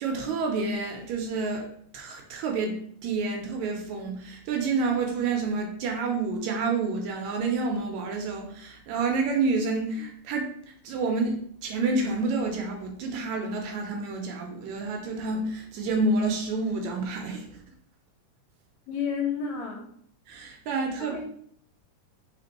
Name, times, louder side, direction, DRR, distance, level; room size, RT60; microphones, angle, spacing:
voice 1, 0.0-10.6 10.8-17.6 20.3-21.2, right 3 dB, 75° right, 2 dB, 1.8 m, -29 dB
voice 2, 18.9-19.9 21.0-21.2, left 6 dB, 75° left, 0 dB, 1.9 m, -31 dB
5.0 x 3.6 x 2.9 m, 0.65 s
omnidirectional pair, 3.5 m